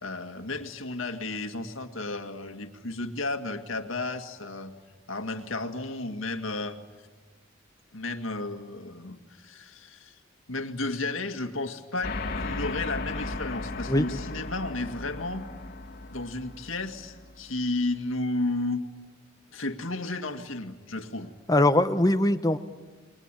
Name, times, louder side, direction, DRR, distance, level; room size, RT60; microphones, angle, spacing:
voice 1, 0.0-4.7 5.1-6.8 7.9-10.2 10.5-15.5 16.1-18.8 19.5-21.3, left 2 dB, 85° left, 6 dB, 2.0 m, -33 dB
sound 1, 12.0-17.8, left 2 dB, 50° left, 2.4 m, -36 dB
voice 2, 21.5-22.6, left 1 dB, 20° left, 10 dB, 1.0 m, -21 dB
29.5 x 22.0 x 9.0 m, 1.3 s
head